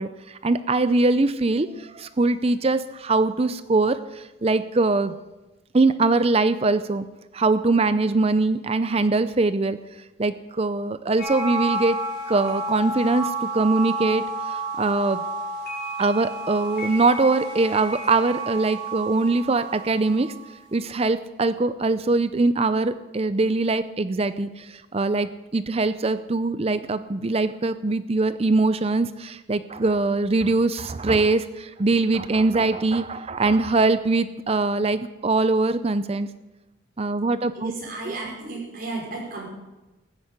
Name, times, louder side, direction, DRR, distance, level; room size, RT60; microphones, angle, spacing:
voice 1, 0.0-5.1 5.7-7.0 7.3-9.8 10.2-12.0 12.3-15.2 16.0-20.3 20.7-36.3 37.0-37.7 38.1-38.2, right 3 dB, 30° right, 13 dB, 0.5 m, -22 dB
sound 1, 11.2-20.5, right 2 dB, 50° left, 4.5 m, -31 dB
voice 2, 37.5-39.5, right 3 dB, 45° right, -2 dB, 5.8 m, -33 dB
15.5 x 10.0 x 8.2 m, 1.1 s
head